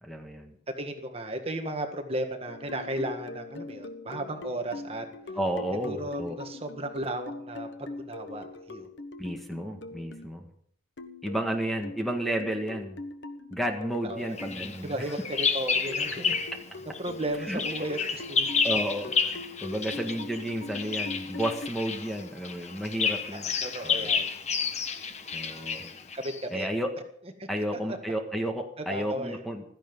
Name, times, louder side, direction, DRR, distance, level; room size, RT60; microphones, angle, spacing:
voice 1, 0.0-0.6 5.4-6.4 9.2-10.5 11.2-13.0 13.5-14.9 17.4-17.6 18.6-23.5 23.8-24.1 25.3-25.9 26.5-26.9 27.5-29.6, right 1 dB, ahead, 3 dB, 1.6 m, -32 dB
voice 2, 0.8-5.1 5.8-8.9 14.0-14.3 14.8-16.4 17.0-18.7 23.3-24.3 26.1-26.7 27.4-27.5 27.9-28.0 28.9-29.4, right 1 dB, 30° right, 5 dB, 1.7 m, -35 dB
sound 1, 2.5-10.3 11.0-14.6 15.2-21.7, left 2 dB, 75° left, 1.3 m, -42 dB
Bird vocalization bird call bird song, 14.4-16.6 16.9-26.5, left 5 dB, 35° left, 1.3 m, -30 dB
15.5 x 13.5 x 5.4 m, 0.64 s
head